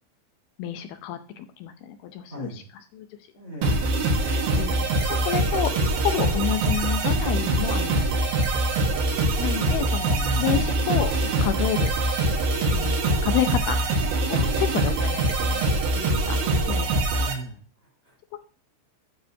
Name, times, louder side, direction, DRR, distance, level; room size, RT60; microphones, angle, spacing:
voice 1, 0.6-2.6 2.9-3.1 3.6-3.7 4.2-4.8 5.3-8.1 9.4-11.9 12.7-13.8 14.3-15.6 15.9-16.4 16.7-16.9, left 10 dB, 80° left, 8 dB, 2.3 m, -29 dB
voice 2, 2.3-2.6 3.3-4.0 10.2-10.7 14.3-14.6 17.2-18.1, right 2 dB, 15° right, -3 dB, 4.9 m, -37 dB
sound 1, 3.6-17.3, right 2 dB, 65° right, 3.0 m, -23 dB
10.0 x 6.4 x 2.8 m, 0.37 s
omnidirectional pair, 5.1 m